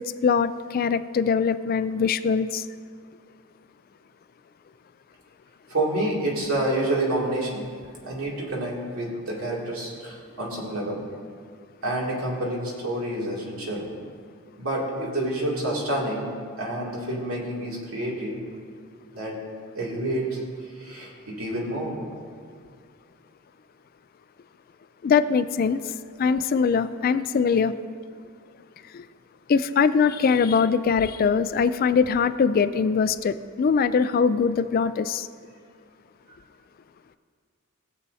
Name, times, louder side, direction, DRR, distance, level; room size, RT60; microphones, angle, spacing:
voice 1, 0.0-2.7 25.0-25.8 26.2-27.7 28.9-29.0 29.5-35.3, left 6 dB, 45° left, 13 dB, 0.3 m, -22 dB
voice 2, 5.7-7.7 8.0-11.1 11.8-13.9 14.6-16.3 16.6-18.4 19.1-19.4 19.7-20.4 20.8-22.0, right 1 dB, 75° right, -4 dB, 2.5 m, -28 dB
19.5 x 7.4 x 2.7 m, 2.1 s
head